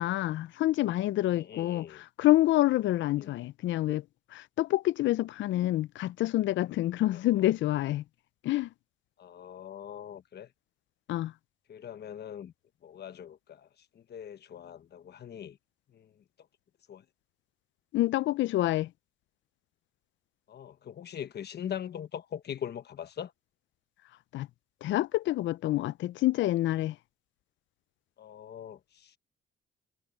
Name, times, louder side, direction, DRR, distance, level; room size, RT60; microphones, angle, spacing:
voice 1, 0.0-4.0 4.3-8.0 8.4-8.7 11.1-11.3 17.9-18.9 24.3-24.5 24.8-27.0, left 15 dB, 70° left, 0.4 m, -27 dB
voice 2, 1.3-2.0 3.2-3.4 7.1-7.5 9.2-10.5 11.7-12.5 12.8-15.6 15.9-16.2 16.9-17.0 20.5-23.3 28.2-29.2, left 9 dB, 55° left, 1.2 m, -42 dB
cardioid pair, 90°, 20 cm